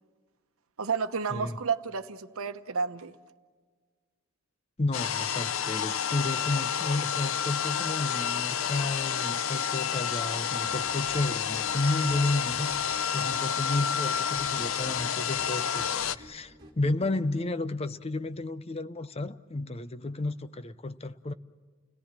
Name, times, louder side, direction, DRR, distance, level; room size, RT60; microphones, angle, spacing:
voice 1, 0.8-3.1, right 5 dB, 85° right, 1.0 m, -31 dB
voice 2, 1.3-1.6 4.8-12.7 13.1-21.3, left 2 dB, 30° left, 0.6 m, -32 dB
sound 1, 4.9-16.2, left 8 dB, 70° left, 0.6 m, -30 dB
sound 2, 10.6-17.2, equal, 20° right, 3.8 m, -52 dB
29.5 x 18.0 x 7.4 m
head